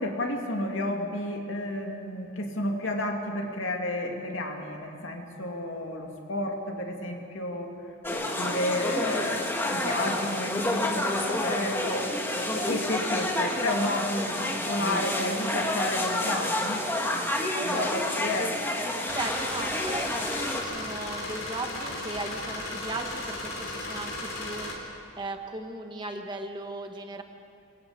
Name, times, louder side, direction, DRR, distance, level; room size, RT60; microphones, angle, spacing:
voice 1, 0.0-7.7 8.1-12.1 12.5-16.8 17.1-18.5, left 1 dB, 65° left, 2 dB, 2.6 m, -31 dB
sound 1, 8.0-20.6, left 1 dB, 10° left, 1.6 m, -29 dB
voice 2, 17.3-18.2 19.1-27.2, right 2 dB, 20° right, 4 dB, 1.4 m, -37 dB
sound 2, 19.1-24.7, left 2 dB, 80° left, 4.1 m, -36 dB
26.5 x 22.5 x 5.2 m, 2.6 s
head